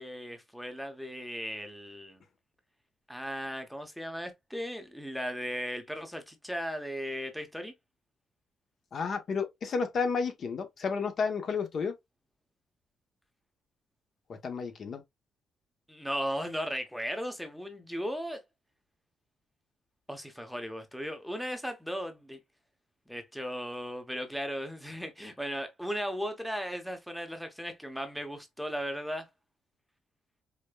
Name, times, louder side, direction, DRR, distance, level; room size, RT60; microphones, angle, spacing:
voice 1, 0.0-2.2 3.1-7.7 15.9-18.4 20.1-22.4 23.1-29.3, equal, ahead, 0.7 m, -36 dB
voice 2, 8.9-11.9 14.4-15.0, left 5 dB, 55° left, 0.8 m, -31 dB
4.9 x 2.1 x 2.2 m
cardioid pair, 90°, 0 cm